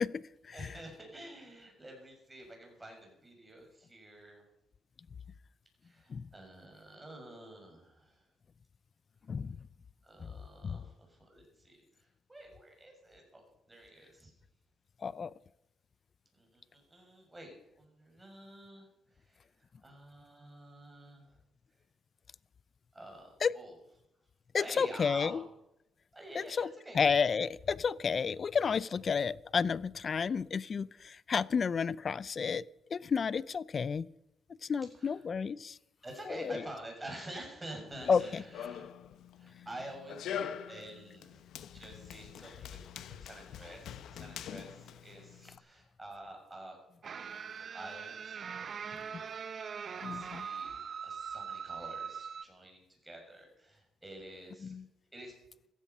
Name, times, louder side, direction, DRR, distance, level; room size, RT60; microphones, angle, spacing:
voice 1, 0.0-0.7 6.1-6.3 9.3-9.6 10.6-10.8 15.0-15.3 23.4-23.5 24.5-25.4 26.3-32.7 32.9-34.1 34.6-35.8 36.3-36.6 38.1-38.4 49.1-49.2 50.0-50.5 54.6-54.8, left 6 dB, 45° left, 21 dB, 0.5 m, -31 dB
voice 2, 0.5-4.4 5.8-8.2 10.0-14.3 16.3-18.9 19.1-21.4 22.9-23.7 24.5-25.4 26.1-27.2 35.0-35.2 36.0-38.9 39.4-41.4 41.7-46.8 47.0-48.2 48.5-49.4 49.9-54.7 55.1-55.3, right 1 dB, 15° right, 2 dB, 6.7 m, -49 dB
Run, 37.9-45.6, left 9 dB, 75° left, 0.9 m, -44 dB
sound 1, 47.0-52.4, right 6 dB, 50° right, 0.7 m, -41 dB
15.0 x 14.5 x 5.5 m, 0.83 s
cardioid pair, 90°, 0 cm